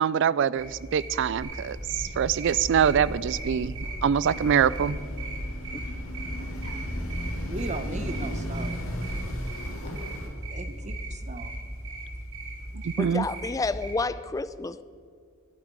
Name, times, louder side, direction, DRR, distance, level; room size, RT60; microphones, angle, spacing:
voice 1, 0.0-5.0 12.7-13.3, right 8 dB, 60° right, 0.4 m, -24 dB
sound 1, 0.6-13.9, right 2 dB, 85° right, 3.8 m, -39 dB
Bird, 1.4-10.2, equal, 65° left, 2.8 m, -37 dB
sound 2, 4.3-10.3, equal, 85° left, 2.2 m, -38 dB
voice 2, 7.4-8.8 10.5-11.5, right 2 dB, 35° right, 0.9 m, -37 dB
voice 3, 13.0-14.8, left 3 dB, 15° left, 0.4 m, -30 dB
11.0 x 8.6 x 9.6 m
head